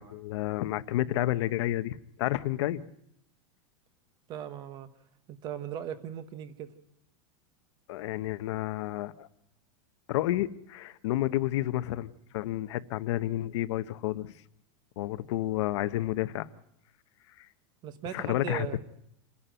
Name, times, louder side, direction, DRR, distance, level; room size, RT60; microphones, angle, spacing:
voice 1, 0.0-2.8 7.9-9.3 10.1-14.3 15.0-16.5 18.1-18.8, left 15 dB, 60° left, 13 dB, 0.9 m, -30 dB
voice 2, 4.3-4.9 5.3-6.7 17.8-18.8, right 9 dB, 25° right, 13 dB, 1.1 m, -38 dB
28.5 x 11.5 x 9.1 m, 0.77 s
supercardioid pair, 175°, 17 cm